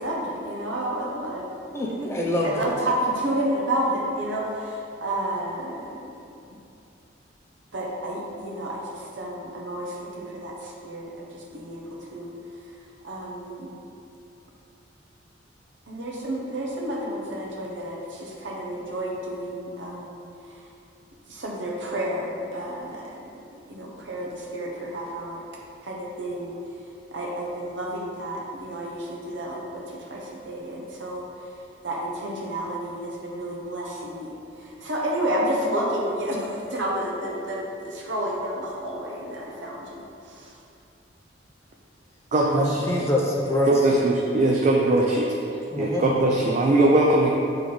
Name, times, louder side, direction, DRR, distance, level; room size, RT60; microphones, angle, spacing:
voice 1, 0.0-1.5 2.0-2.1 2.4-6.1 7.7-12.3 13.0-13.8 15.9-20.6 21.3-23.2 23.5-25.4 25.8-26.5 27.1-31.5 31.8-34.3 34.6-40.6, right 1 dB, 70° right, -2 dB, 1.0 m, -31 dB
voice 2, 1.7-2.7 42.5-44.0 44.9-45.0 45.7-46.1, left 1 dB, 15° left, -4 dB, 0.6 m, -25 dB
voice 3, 42.3-42.8 43.7-45.3 45.8-47.3, right 2 dB, 40° right, -2 dB, 0.4 m, -20 dB
7.8 x 3.5 x 3.8 m, 2.6 s
head